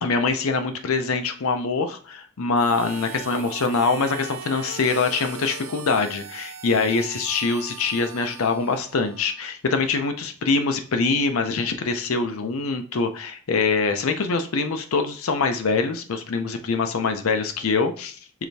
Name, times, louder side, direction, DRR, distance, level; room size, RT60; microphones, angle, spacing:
voice 1, 0.0-18.4, left 4 dB, 75° left, 7 dB, 0.5 m, -24 dB
Harmonica, 2.6-9.5, right 6 dB, 75° right, 0.4 m, -39 dB
4.8 x 3.3 x 2.7 m, 0.42 s
head